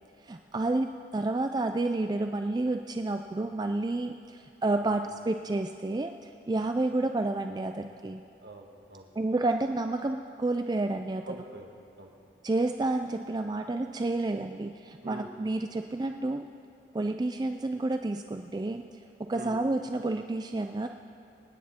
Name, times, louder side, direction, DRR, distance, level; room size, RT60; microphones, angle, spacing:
voice 1, 0.2-8.2 9.2-11.2 12.4-16.5 16.9-18.8 19.2-20.9, right 2 dB, 25° right, 6 dB, 0.3 m, -30 dB
voice 2, 4.8-5.2 8.4-9.1 11.3-11.7 12.0-12.1 15.0-15.5 19.3-19.6, right 1 dB, 60° right, 1 dB, 1.6 m, -45 dB
27.0 x 9.6 x 4.3 m, 2.7 s
head